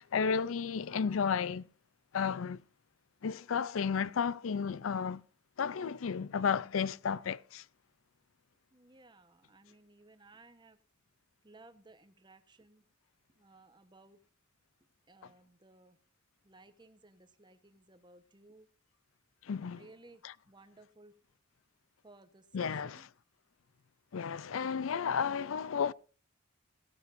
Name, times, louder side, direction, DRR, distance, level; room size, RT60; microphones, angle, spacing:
voice 1, 0.0-1.7 2.1-2.6 3.2-5.2 5.6-7.6 19.4-19.9 20.2-20.3 22.5-23.1 24.1-25.9, left 6 dB, 80° left, 0.5 m, -33 dB
voice 2, 8.7-10.8 11.4-12.8 13.4-14.2 15.1-16.0 16.4-18.7 19.7-20.2 20.5-21.1 22.0-23.1, right 2 dB, 20° right, 1.0 m, -59 dB
16.5 x 13.0 x 2.6 m
head